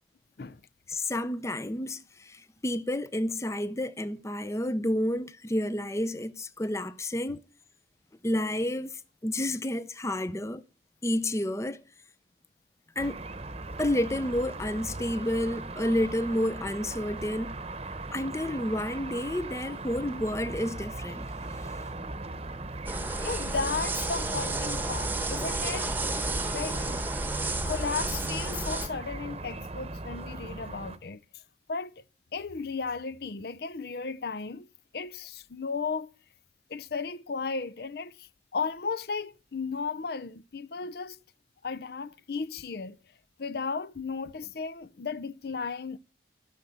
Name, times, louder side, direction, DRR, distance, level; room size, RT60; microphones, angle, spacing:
voice 1, 0.9-7.4 8.2-10.6 11.0-11.8 13.0-13.2 13.8-17.5 18.1-21.3, left 1 dB, 15° left, 0.6 m, -30 dB
sound 1, 13.0-31.0, right 2 dB, 35° right, 1.0 m, -38 dB
sound 2, 22.9-28.9, right 2 dB, 10° right, 1.0 m, -32 dB
voice 2, 23.2-25.9 26.3-27.0 27.5-31.2 31.7-32.0 32.3-34.7 34.9-36.1 36.7-41.2 41.6-43.0 43.4-46.0, left 4 dB, 60° left, 0.6 m, -35 dB
14.5 x 6.8 x 8.4 m
head